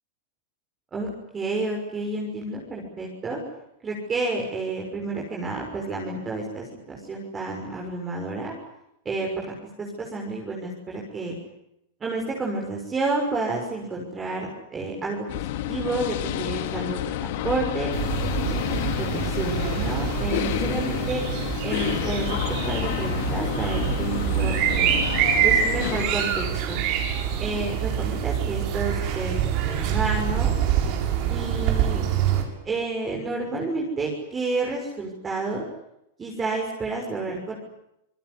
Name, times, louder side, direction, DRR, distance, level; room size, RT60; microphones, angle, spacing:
voice 1, 1.3-3.4 3.8-8.5 9.0-11.4 12.0-15.2 15.7-17.9 18.4-21.3 21.6-25.1 25.4-26.8 27.4-30.5 31.3-32.0 32.6-35.6 36.2-37.5, right 3 dB, 15° right, -1 dB, 6.4 m, -30 dB
sound 1, 15.3-26.1, left 12 dB, 60° left, 2.8 m, -29 dB
sound 2, 17.9-32.4, right 9 dB, 45° right, 7.8 m, -26 dB
27.0 x 20.5 x 10.0 m, 0.81 s
supercardioid pair, 140°, 0 cm